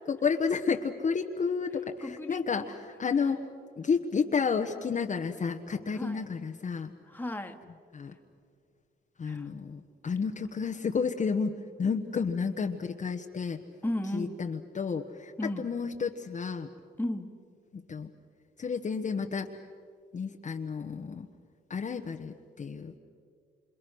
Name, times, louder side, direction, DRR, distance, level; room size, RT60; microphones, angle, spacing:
voice 1, 0.1-3.5 3.8-6.9 7.9-8.1 9.2-13.6 14.1-16.7 17.7-18.1 18.6-19.5 20.1-21.3 21.7-23.0, left 5 dB, 40° left, 4 dB, 1.2 m, -31 dB
voice 2, 2.0-2.8 5.9-6.3 7.1-7.6 9.3-9.5 13.8-14.4 15.4-15.7 17.0-17.3, left 1 dB, 10° left, 6 dB, 1.9 m, -35 dB
27.5 x 27.0 x 6.3 m, 2.2 s
cardioid pair, 90°, 20 cm